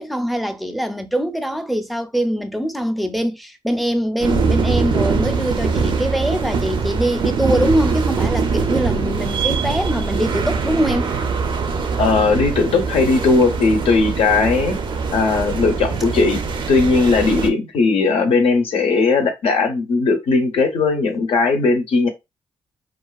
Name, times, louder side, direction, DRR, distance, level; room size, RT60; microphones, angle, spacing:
voice 1, 0.0-11.1, equal, ahead, 0.4 m, -22 dB
sound 1, 4.2-17.5, right 5 dB, 60° right, 0.4 m, -22 dB
voice 2, 12.0-14.8 15.1-16.4 16.7-22.1, left 4 dB, 85° left, 0.6 m, -17 dB
2.4 x 2.4 x 2.3 m
cardioid pair, 75°, 9 cm